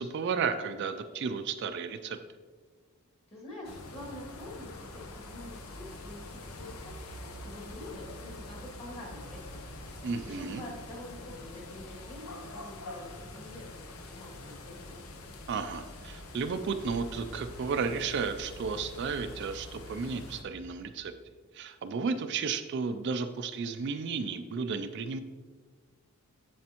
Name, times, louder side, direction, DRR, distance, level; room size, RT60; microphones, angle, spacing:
voice 1, 0.0-2.2 10.0-10.6 15.5-21.1 21.5-25.2, right 5 dB, 50° right, 9 dB, 0.3 m, -33 dB
voice 2, 3.3-9.6 9.9-13.7 14.1-15.0, left 1 dB, 25° left, -3 dB, 1.8 m, -46 dB
sound 1, 3.6-20.4, left 1 dB, 75° left, 0.8 m, -45 dB
7.4 x 7.0 x 2.9 m, 1.5 s
head